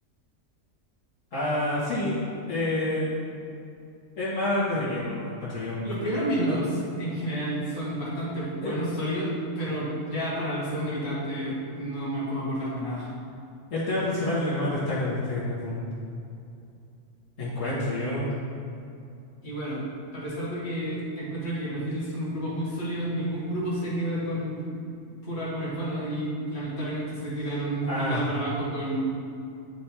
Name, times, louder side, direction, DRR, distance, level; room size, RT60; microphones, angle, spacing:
voice 1, 1.3-2.2 2.5-3.1 4.2-5.8 8.6-8.7 13.7-15.9 17.4-18.3 27.9-28.2, left 1 dB, 70° left, -11 dB, 1.9 m, -28 dB
voice 2, 5.8-13.1 19.4-19.8 20.1-24.6 25.2-29.0, right 1 dB, 50° left, -8 dB, 2.1 m, -30 dB
9.6 x 3.3 x 4.4 m, 2.6 s
omnidirectional pair, 1.4 m